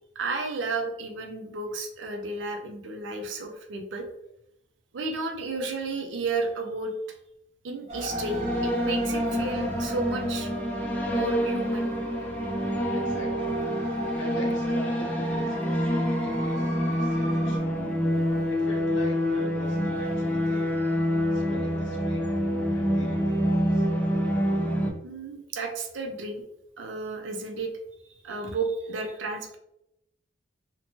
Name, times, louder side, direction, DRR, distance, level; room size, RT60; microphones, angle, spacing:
voice 1, 0.2-4.1 4.9-6.9 7.6-10.5 11.1-11.9 25.0-26.4 26.8-27.7 28.2-29.6, right 3 dB, 70° right, 3 dB, 0.5 m, -32 dB
sound 1, 7.9-17.6, equal, 35° right, 0.8 m, -39 dB
sound 2, 8.1-24.9, equal, 10° left, 0.3 m, -27 dB
voice 2, 12.9-13.6 14.2-17.6 18.5-20.7 21.3-23.9, equal, 70° left, 0 dB, 0.5 m, -42 dB
2.8 x 2.1 x 2.9 m, 0.83 s
head